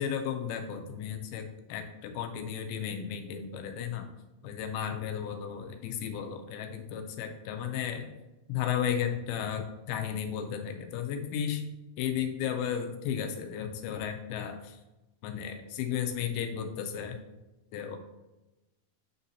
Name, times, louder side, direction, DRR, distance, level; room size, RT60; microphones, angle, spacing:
voice 1, 0.0-4.1 4.4-8.1 8.5-11.6 12.0-14.8 15.2-17.2 17.7-18.0, left 8 dB, 85° left, 5 dB, 2.5 m, -34 dB
8.9 x 3.9 x 2.7 m, 1.0 s
omnidirectional pair, 4.4 m